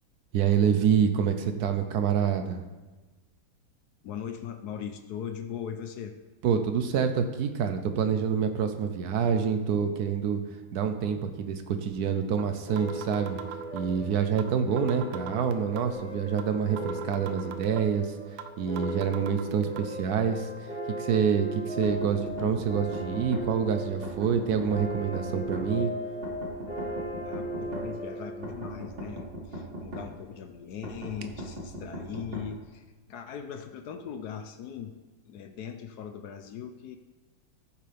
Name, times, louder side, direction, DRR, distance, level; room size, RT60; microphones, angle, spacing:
voice 1, 0.3-2.6 6.4-10.4 10.7-13.4 13.7-18.1 18.6-20.5 21.0-25.9, right 7 dB, 65° right, 7 dB, 1.0 m, -27 dB
voice 2, 4.0-6.2 27.2-35.0 35.2-37.0, left 8 dB, 70° left, 7 dB, 0.9 m, -39 dB
sound 1, 12.4-12.5 12.8-13.9 14.4-14.5 14.8-15.9 16.4-16.5 16.8-17.9 18.4-18.5 18.8-19.8, right 11 dB, 85° right, 1.5 m, -40 dB
sound 2, 12.7-29.8, equal, 50° left, 3.4 m, -38 dB
sound 3, 21.8-23.4 24.0-25.6 26.2-27.9 28.4-30.1 30.8-32.5, equal, 35° right, 2.2 m, -38 dB
13.5 x 7.5 x 3.4 m, 1.2 s
omnidirectional pair, 2.3 m